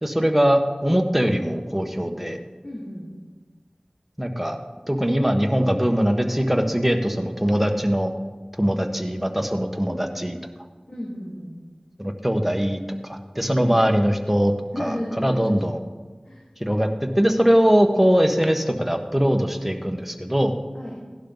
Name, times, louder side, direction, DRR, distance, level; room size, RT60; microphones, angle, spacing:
voice 1, 0.0-2.4 4.2-4.6 4.9-8.1 8.6-10.4 12.0-14.5 14.8-15.8 16.6-16.9 17.1-20.5, equal, 5° right, 4 dB, 1.4 m, -21 dB
voice 2, 2.6-3.1 10.9-11.6 13.6-13.7 14.7-15.5 16.2-16.4 20.7-21.0, equal, 65° left, -6 dB, 3.2 m, -32 dB
17.0 x 11.5 x 4.0 m, 1.4 s
wide cardioid pair, 40°, 2 cm